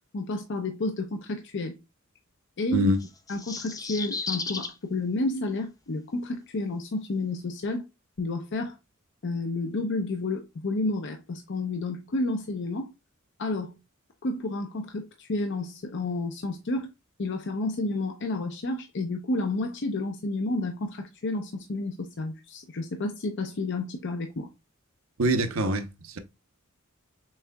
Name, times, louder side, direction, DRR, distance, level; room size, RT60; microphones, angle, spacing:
voice 1, 0.1-1.8 2.6-2.9 3.3-7.8 8.2-8.8 9.2-12.9 13.4-13.8 14.2-16.9 17.2-24.5, left 2 dB, 60° left, 0.6 m, -30 dB
sound 1, 3.0-4.7, left 4 dB, 15° left, 0.5 m, -34 dB
voice 2, 25.2-26.2, right 1 dB, 75° right, 0.8 m, -24 dB
6.3 x 3.6 x 2.2 m
head